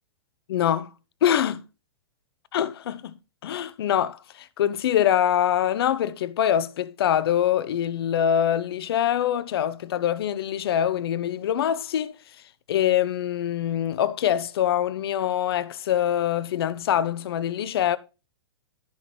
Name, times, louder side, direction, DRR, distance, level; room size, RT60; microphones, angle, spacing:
voice 1, 0.5-0.9 1.2-1.6 2.5-3.1 3.4-12.1 12.7-18.0, left 10 dB, 65° left, 0.9 m, -24 dB
12.0 x 6.1 x 3.2 m
hypercardioid pair, 115°, 14 cm